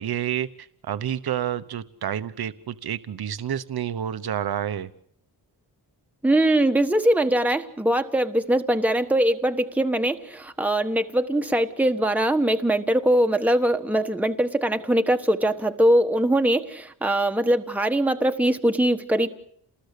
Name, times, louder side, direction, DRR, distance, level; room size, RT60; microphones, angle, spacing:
voice 1, 0.0-4.9, right 10 dB, 65° right, 13 dB, 1.0 m, -29 dB
voice 2, 6.2-19.3, right 1 dB, 5° right, 6 dB, 1.3 m, -22 dB
29.0 x 20.0 x 8.4 m, 0.67 s
wide cardioid pair, 180°, 40 cm